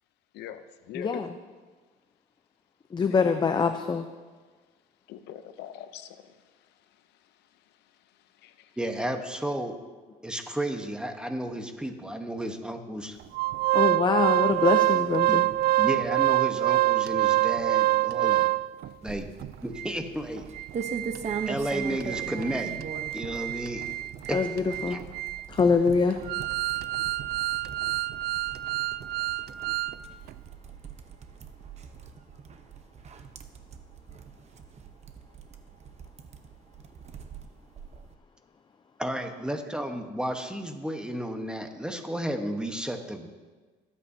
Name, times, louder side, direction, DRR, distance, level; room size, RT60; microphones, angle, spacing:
voice 1, 0.3-1.2 3.0-3.2 5.1-6.3 8.4-8.7, left 11 dB, 80° left, 0.7 m, -42 dB
voice 2, 0.9-1.3 2.9-4.0 13.7-15.4 24.3-25.0 25.5-26.2, left 5 dB, 25° left, 0.5 m, -24 dB
voice 3, 8.8-9.8 10.2-13.2 15.3-15.4 15.8-18.5 19.0-19.3 19.6-20.4 21.5-22.7 23.1-23.8 24.3-24.4 24.9-25.0 39.0-43.3, right 1 dB, 5° right, 1.1 m, -32 dB
Organ, 13.3-18.9 19.4-19.5 19.8-19.9 20.4-30.0 30.3-30.4, right 16 dB, 70° right, 0.4 m, -27 dB
sound 1, 19.0-38.1, right 6 dB, 40° right, 0.9 m, -42 dB
22.5 x 8.5 x 2.7 m
cardioid pair, 110°, 17 cm